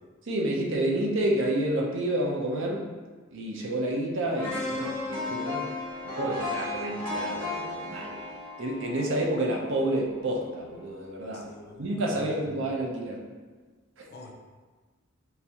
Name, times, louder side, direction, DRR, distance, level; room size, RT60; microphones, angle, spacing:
voice 1, 0.2-2.9 3.3-5.7 6.0-8.2 8.6-11.5 11.8-13.2 14.0-14.1, right 1 dB, 60° right, -2 dB, 0.6 m, -29 dB
sound 1, 4.4-10.4 10.8-10.9, left 2 dB, 90° right, 1.3 m, -35 dB
voice 2, 11.3-11.9 12.1-12.3 12.6-12.7 14.1-14.3, left 3 dB, 50° left, 2 dB, 0.4 m, -45 dB
3.9 x 2.6 x 2.8 m, 1.4 s
head